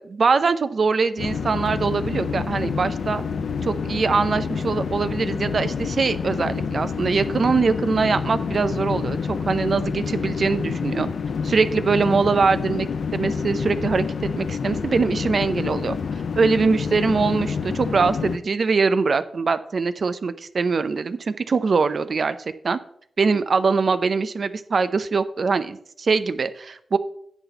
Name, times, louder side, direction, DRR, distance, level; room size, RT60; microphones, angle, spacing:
voice 1, 0.0-3.2 3.6-11.1 11.4-16.0 16.4-22.4 22.6-22.8 23.2-27.0, right 4 dB, 65° right, 12 dB, 0.6 m, -22 dB
sound 1, 1.2-18.4, left 6 dB, 80° left, 0.6 m, -28 dB
9.8 x 4.1 x 7.1 m, 0.65 s
cardioid pair, 45°, 0 cm